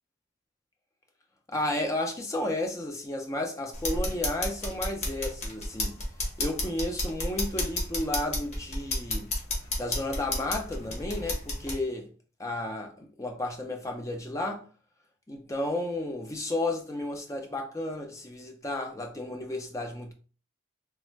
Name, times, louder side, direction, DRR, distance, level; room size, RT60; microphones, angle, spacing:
voice 1, 1.5-6.0 6.4-9.3 9.8-12.1 12.4-14.7 15.3-20.1, left 1 dB, 15° left, 0.4 m, -32 dB
sound 1, 3.7-11.8, left 1 dB, 35° left, 0.9 m, -32 dB
3.2 x 2.0 x 3.2 m
head